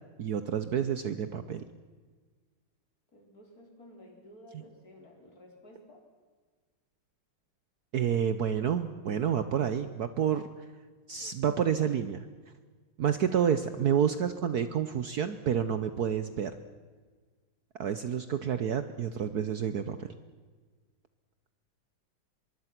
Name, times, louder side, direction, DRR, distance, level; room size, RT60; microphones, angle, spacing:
voice 1, 0.2-1.6 7.9-10.5 11.1-12.3 13.0-16.5 17.8-20.1, right 8 dB, 60° right, 11 dB, 1.2 m, -29 dB
voice 2, 3.1-6.0, left 1 dB, 45° left, 1 dB, 5.0 m, -53 dB
24.5 x 22.0 x 6.0 m, 1.4 s
omnidirectional pair, 2.2 m